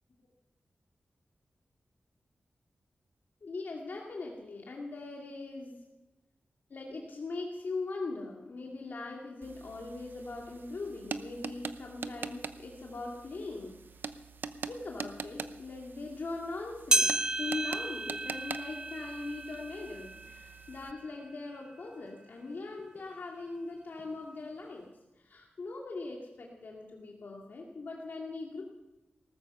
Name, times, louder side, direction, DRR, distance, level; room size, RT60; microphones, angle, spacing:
voice 1, 3.4-5.8 6.7-13.8 14.6-24.9 25.2-28.6, left 3 dB, 60° left, -1 dB, 2.2 m, -41 dB
sound 1, 9.4-20.9, right 5 dB, 65° right, 0.7 m, -44 dB
sound 2, 16.9-21.6 22.1-22.2 23.0-23.1 24.0-24.1, right 2 dB, 20° right, 0.7 m, -33 dB
18.5 x 14.0 x 5.5 m, 1.0 s
wide cardioid pair, 145°, 4 cm